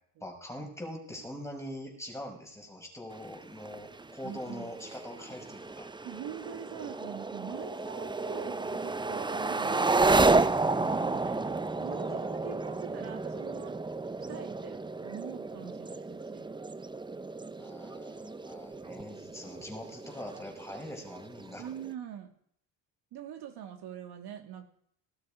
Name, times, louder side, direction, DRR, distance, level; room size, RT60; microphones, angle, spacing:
voice 1, 0.2-5.9 10.3-11.7 17.6-21.7, left 1 dB, 5° left, 2 dB, 5.6 m, -43 dB
sound 1, 3.1-21.9, right 3 dB, 10° right, 0.7 m, -32 dB
voice 2, 4.2-4.7 6.0-10.5 10.9-13.8 14.3-16.5 21.6-22.3 23.1-24.7, right 9 dB, 65° right, 4 dB, 2.5 m, -44 dB
18.0 x 13.0 x 5.0 m, 0.65 s
cardioid pair, 100°, 43 cm